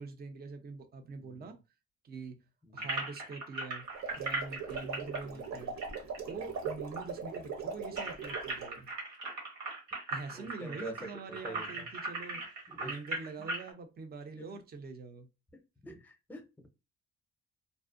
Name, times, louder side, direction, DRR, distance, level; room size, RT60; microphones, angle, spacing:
voice 1, 0.0-1.6 2.0-2.4 2.7-3.8 4.1-5.7 6.3-8.9 10.1-15.3, right 4 dB, 30° right, 0.5 m, -45 dB
voice 2, 1.2-1.6 2.6-2.9 5.1-5.6 6.3-6.6 10.3-11.0 11.3-11.9 12.3-13.0 14.4-14.5 15.8-16.7, equal, 5° left, 0.6 m, -48 dB
sound 1, 2.8-6.7 7.0-7.1 7.3-13.7, right 2 dB, 85° right, 1.1 m, -39 dB
sound 2, 3.8-8.8, right 5 dB, 65° right, 0.8 m, -40 dB
2.5 x 2.0 x 2.4 m
cardioid pair, 90°, 30 cm